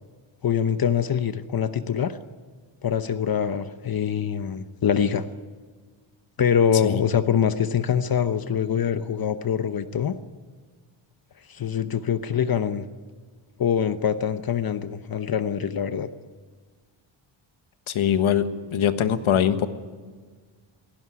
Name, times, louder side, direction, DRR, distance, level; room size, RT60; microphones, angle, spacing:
voice 1, 0.4-2.2 2.8-5.3 6.4-10.2 11.5-12.9 13.6-16.1, left 8 dB, 45° left, 11 dB, 0.9 m, -24 dB
voice 2, 17.9-19.7, left 9 dB, 70° left, 10 dB, 1.5 m, -22 dB
18.5 x 16.5 x 9.6 m, 1.5 s
cardioid pair, 120°, 50 cm